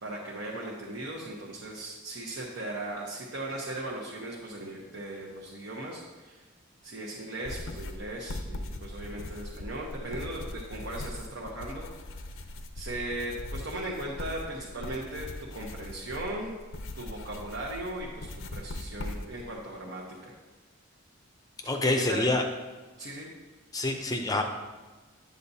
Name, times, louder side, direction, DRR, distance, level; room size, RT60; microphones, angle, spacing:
voice 1, 0.0-6.4 6.8-11.9 12.7-16.6 16.9-20.3 21.8-22.3 23.0-23.3, right 1 dB, 70° right, -3 dB, 1.0 m, -38 dB
sound 1, 7.4-19.5, left 1 dB, 90° left, 0.6 m, -40 dB
voice 2, 21.6-22.4 23.7-24.4, left 2 dB, 20° left, 4 dB, 0.5 m, -27 dB
8.4 x 8.0 x 2.7 m, 1.3 s
head